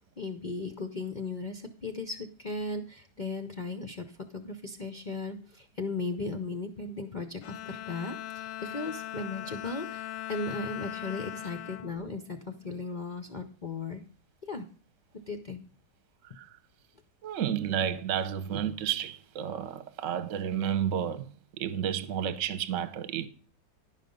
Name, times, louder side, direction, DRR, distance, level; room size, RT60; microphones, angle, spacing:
voice 1, 0.2-14.0 14.4-14.7 15.3-15.6, left 3 dB, 65° left, 0.4 m, -37 dB
Bowed string instrument, 7.4-12.9, left 12 dB, 90° left, 1.3 m, -40 dB
voice 2, 17.2-21.3 21.6-23.3, right 9 dB, 55° right, 1.0 m, -31 dB
11.0 x 5.8 x 5.2 m
omnidirectional pair, 1.8 m